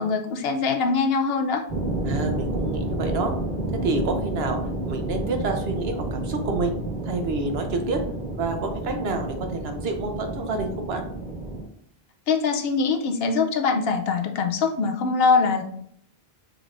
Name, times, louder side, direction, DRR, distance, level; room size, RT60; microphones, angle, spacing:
voice 1, 0.0-1.6 12.3-15.6, left 4 dB, 75° left, 5 dB, 0.8 m, -23 dB
sound 1, 1.7-11.6, right 1 dB, 45° right, 1.4 m, -30 dB
voice 2, 2.1-3.3 3.7-4.6 4.9-6.8 7.0-8.0 8.3-11.0, right 3 dB, 75° right, 5 dB, 1.0 m, -28 dB
6.3 x 3.2 x 2.5 m, 0.68 s
omnidirectional pair, 1.0 m